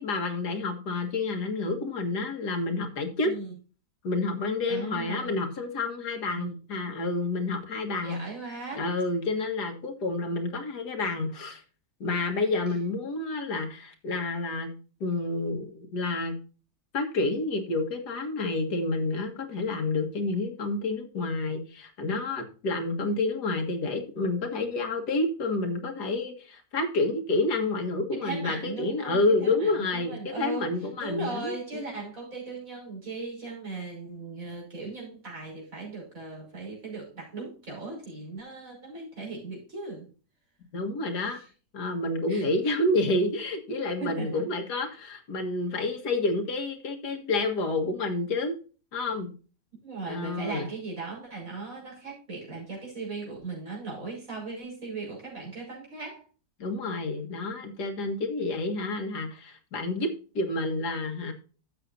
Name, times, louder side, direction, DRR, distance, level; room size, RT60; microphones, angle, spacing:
voice 1, 0.0-3.4 4.0-8.2 8.8-11.6 12.0-14.7 15.0-16.4 16.9-31.6 40.7-41.4 41.7-48.6 48.9-49.3 50.1-50.7 56.6-61.3, left 2 dB, 85° left, 5 dB, 2.3 m, -29 dB
voice 2, 3.2-3.5 4.7-5.3 6.3-6.6 8.0-8.9 28.1-40.1 41.3-41.5 42.3-42.4 44.0-44.4 44.7-44.8 49.8-56.2, right 3 dB, 55° right, -2 dB, 6.0 m, -38 dB
12.5 x 8.3 x 2.7 m, 0.36 s
omnidirectional pair, 1.7 m